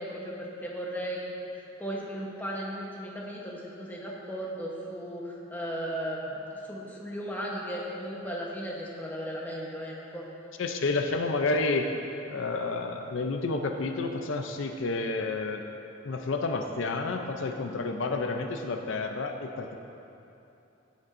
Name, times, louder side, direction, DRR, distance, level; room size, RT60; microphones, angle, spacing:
voice 1, 0.0-6.4 6.6-10.3, equal, 10° left, -3 dB, 1.0 m, -36 dB
voice 2, 10.6-11.9 12.3-15.6 16.0-19.8, left 3 dB, 70° left, 4 dB, 0.5 m, -30 dB
16.0 x 7.0 x 2.6 m, 2.9 s
head